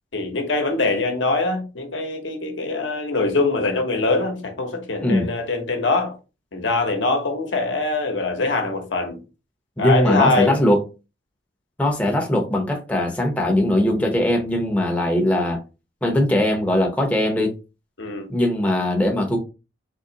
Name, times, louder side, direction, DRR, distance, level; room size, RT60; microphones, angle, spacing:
voice 1, 0.1-6.2 6.5-9.2 9.8-10.6 18.0-18.3, left 3 dB, 70° left, 0.9 m, -23 dB
voice 2, 9.8-10.8 11.8-15.6 16.0-17.5 18.3-19.4, left 1 dB, 5° left, 0.6 m, -20 dB
3.8 x 2.9 x 2.7 m
head